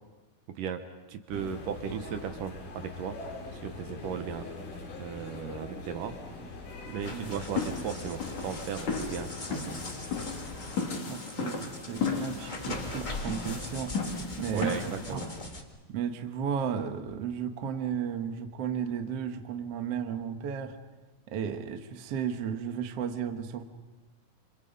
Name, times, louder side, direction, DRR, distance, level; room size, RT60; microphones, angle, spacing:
voice 1, 0.5-0.8 1.1-3.2 3.5-4.4 5.0-6.1 6.9-9.8 14.5-15.3, right 8 dB, 70° right, 7 dB, 2.6 m, -36 dB
sound 1, 1.3-10.8, left 3 dB, 80° left, 5.2 m, -42 dB
sound 2, 7.0-15.5, left 4 dB, 55° left, 4.3 m, -35 dB
sound 3, 7.0-15.6, left 2 dB, 35° left, 0.7 m, -42 dB
voice 2, 11.1-13.9 14.4-15.2 15.9-20.8 21.3-23.6, right 7 dB, 55° right, 6 dB, 1.9 m, -34 dB
29.5 x 26.0 x 5.4 m, 1.2 s
omnidirectional pair, 4.2 m